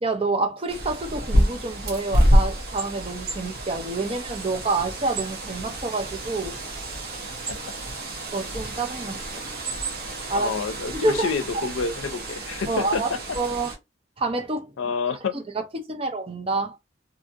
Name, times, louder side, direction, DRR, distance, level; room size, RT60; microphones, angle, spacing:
voice 1, 0.0-6.6 8.3-9.4 10.3-10.5 10.9-11.7 12.7-13.7 14.2-14.7 15.1-15.4 15.9-16.8, right 3 dB, 30° right, 0.6 m, -28 dB
Bird, 0.7-13.8, equal, 50° right, 0.9 m, -27 dB
voice 2, 10.3-13.2 14.8-15.3, left 5 dB, 90° left, 0.5 m, -28 dB
2.7 x 2.7 x 2.4 m
head